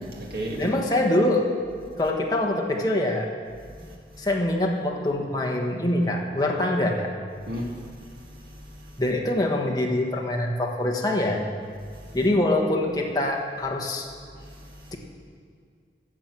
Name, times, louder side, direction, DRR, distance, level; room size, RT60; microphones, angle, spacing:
voice 1, 0.0-0.7 3.7-4.3 7.5-9.0 11.9-12.2 14.3-15.0, equal, 60° right, -1 dB, 2.1 m, -37 dB
voice 2, 0.6-1.5 2.0-3.3 4.2-7.1 9.0-11.4 12.1-14.1, left 1 dB, 20° left, 0 dB, 1.3 m, -24 dB
12.5 x 7.6 x 7.5 m, 2.1 s
head